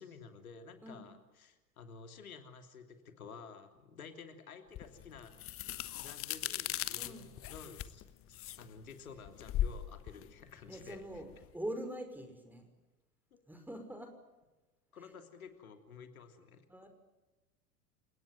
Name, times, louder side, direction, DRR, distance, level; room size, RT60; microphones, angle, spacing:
voice 1, 0.0-5.3 6.0-11.2 13.3-13.4 14.9-16.6, left 5 dB, 70° left, 7 dB, 3.1 m, -52 dB
sound 1, 4.8-11.5, left 12 dB, 30° left, 1.2 m, -39 dB
voice 2, 7.0-7.3 10.7-11.3 11.5-12.7 13.5-14.1 16.7-16.9, right 1 dB, 5° right, 6 dB, 5.7 m, -43 dB
30.0 x 18.0 x 9.3 m, 1.1 s
figure-of-eight pair, 80°, 44 cm